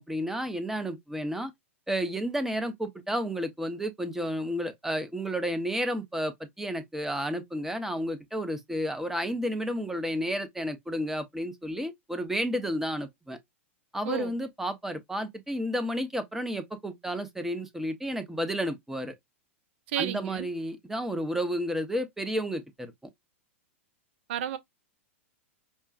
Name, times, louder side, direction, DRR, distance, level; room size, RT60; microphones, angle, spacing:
voice 1, 0.0-1.5 1.9-13.4 13.9-19.1 20.0-22.9, equal, 5° right, 0.8 m, -31 dB
voice 2, 19.9-20.5 24.3-24.6, right 11 dB, 55° right, 0.7 m, -31 dB
5.3 x 2.3 x 2.4 m
figure-of-eight pair, 100°, 7 cm